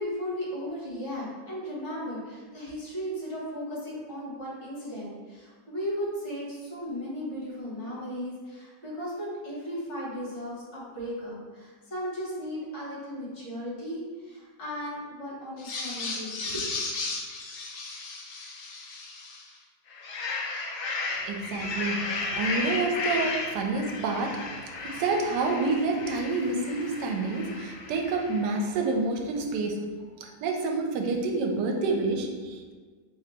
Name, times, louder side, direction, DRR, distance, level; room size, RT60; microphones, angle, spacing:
voice 1, 0.0-16.7, equal, 45° left, -6 dB, 1.5 m, -36 dB
sound 1, 15.6-19.5 19.9-28.6, left 3 dB, 80° left, 0.6 m, -34 dB
voice 2, 21.2-29.8 30.2-32.6, right 3 dB, 80° right, 2 dB, 1.2 m, -28 dB
3.8 x 3.0 x 3.4 m, 1.5 s
omnidirectional pair, 1.9 m